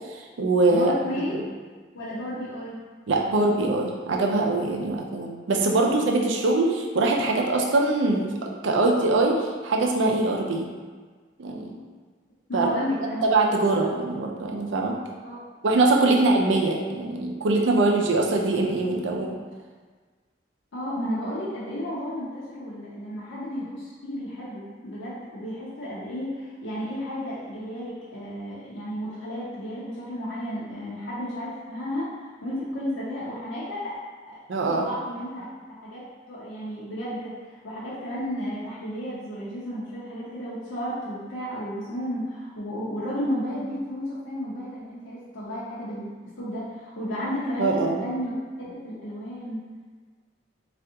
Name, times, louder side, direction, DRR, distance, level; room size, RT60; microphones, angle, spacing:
voice 1, 0.1-0.9 1.3-1.4 3.1-10.7 11.4-11.8 12.5-12.7 13.2-15.0 15.6-19.4 34.5-34.9 47.6-48.0, right 2 dB, 80° right, 0 dB, 0.4 m, -23 dB
voice 2, 0.7-1.4 1.9-2.8 5.8-6.1 12.5-13.2 13.6-13.9 15.2-15.4 20.7-32.1 32.4-34.0 34.3-34.4 34.7-35.5 35.8-36.0 36.3-37.3 37.6-48.3 48.6-49.6, equal, 85° left, -9 dB, 0.6 m, -33 dB
3.4 x 2.4 x 2.8 m, 1.5 s
head